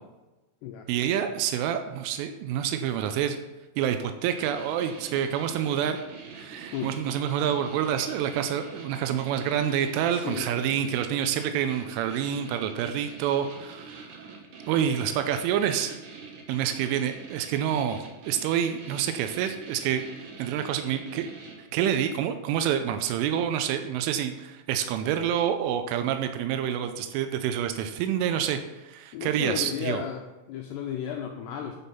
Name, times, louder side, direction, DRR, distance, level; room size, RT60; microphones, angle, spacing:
voice 1, 0.9-3.4 3.8-6.0 6.3-14.2 14.7-16.0 16.5-20.0 20.4-21.3 21.6-30.0, right 9 dB, 90° right, 7 dB, 3.1 m, -27 dB
sound 1, 4.3-22.0, right 4 dB, 70° right, 2.0 m, -44 dB
voice 2, 10.1-10.7 29.1-31.8, left 8 dB, 80° left, 2 dB, 2.4 m, -34 dB
10.5 x 5.4 x 5.7 m, 1.1 s
omnidirectional pair, 5.6 m